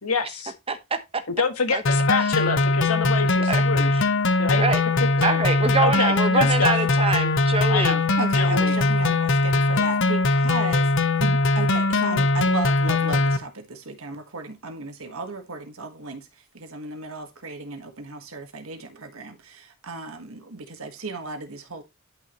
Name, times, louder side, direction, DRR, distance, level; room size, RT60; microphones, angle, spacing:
voice 1, 0.0-0.5 1.3-3.9 4.4-4.6 5.2-5.3 5.8-6.7 7.7-8.0 8.3-8.8, left 4 dB, 85° left, 1.6 m, -26 dB
voice 2, 0.7-1.2 1.7-1.8 3.5-3.6 3.9-4.0 4.5-4.8 5.2-8.0, right 4 dB, 25° right, 0.9 m, -25 dB
sound 1, 1.9-13.4, left 2 dB, 55° left, 0.8 m, -21 dB
voice 3, 8.2-21.8, right 3 dB, 70° right, 1.6 m, -35 dB
10.5 x 5.6 x 3.1 m
head